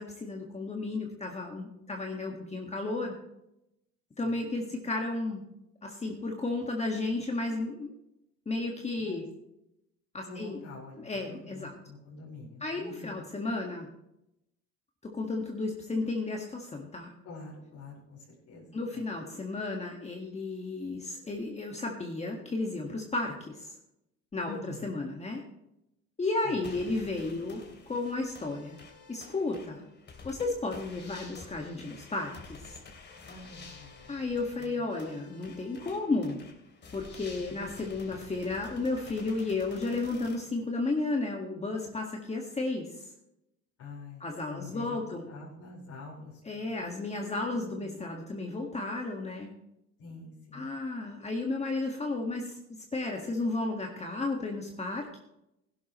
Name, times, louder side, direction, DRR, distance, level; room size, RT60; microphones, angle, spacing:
voice 1, 0.0-3.1 4.2-5.4 5.8-7.9 8.4-9.2 10.1-10.6 11.0-11.7 12.6-13.9 15.0-17.1 18.7-23.7 24.3-24.6 24.8-25.4 26.2-28.8 29.1-29.9 30.2-32.8 34.1-36.4 36.9-43.1 44.2-45.2 46.4-49.5 50.5-55.2, left 3 dB, 20° left, 1 dB, 1.8 m, -33 dB
voice 2, 4.2-4.7 9.0-9.2 10.2-13.2 17.2-19.0 24.4-25.0 26.4-26.6 33.2-34.1 34.6-34.8 37.3-37.8 43.8-44.3 44.5-46.7 47.5-48.0 50.0-50.7, left 3 dB, 70° left, -6 dB, 4.7 m, -47 dB
sound 1, 26.6-40.4, left 4 dB, 35° left, 3.0 m, -50 dB
16.0 x 12.0 x 3.1 m, 0.85 s
cardioid pair, 105°, 29 cm